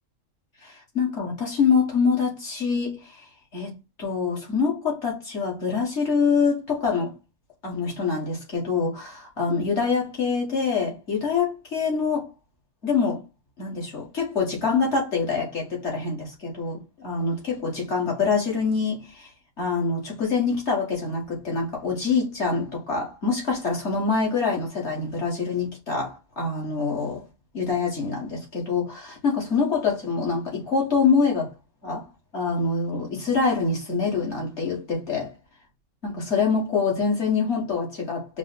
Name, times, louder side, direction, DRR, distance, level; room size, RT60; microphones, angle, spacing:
voice 1, 0.6-3.3 3.5-7.1 7.6-12.3 12.8-13.2 13.6-19.3 19.6-27.2 27.5-31.5 31.8-32.1 32.3-35.3 36.0-38.4, left 5 dB, 60° left, 2.0 m, -25 dB
4.8 x 2.2 x 4.1 m
omnidirectional pair, 1.3 m